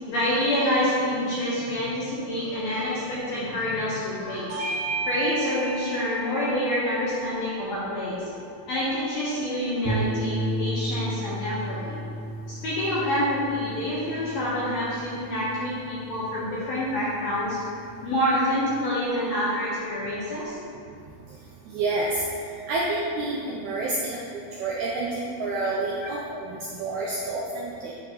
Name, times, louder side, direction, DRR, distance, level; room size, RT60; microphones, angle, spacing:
voice 1, 0.1-4.6 5.1-8.2 8.7-12.0 12.5-20.5, left 1 dB, 70° left, -8 dB, 1.7 m, -27 dB
Bell / Doorbell, 4.5-9.3, right 3 dB, 50° right, 1.8 m, -35 dB
sound 1, 9.8-18.2, right 1 dB, 65° right, 1.3 m, -34 dB
voice 2, 21.7-27.9, right 2 dB, 85° right, -4 dB, 1.7 m, -29 dB
9.4 x 3.9 x 2.9 m, 2.4 s
omnidirectional pair, 4.0 m